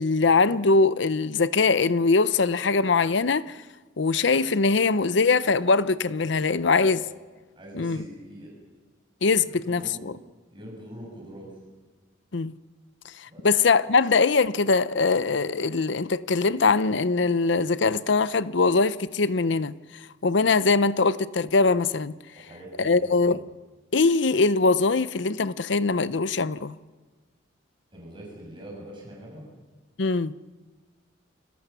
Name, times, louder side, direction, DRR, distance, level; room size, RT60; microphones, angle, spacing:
voice 1, 0.0-3.5 4.0-7.0 7.7-8.0 9.2-10.1 12.3-12.5 13.4-19.7 20.2-22.1 22.8-23.4 23.9-26.7 30.0-30.3, left 4 dB, 65° left, 0.7 m, -22 dB
voice 2, 7.6-8.5 9.7-10.1 10.5-11.5 13.3-13.5 22.3-23.4 27.9-29.4, equal, 25° right, 6.6 m, -43 dB
30.0 x 21.5 x 6.9 m
head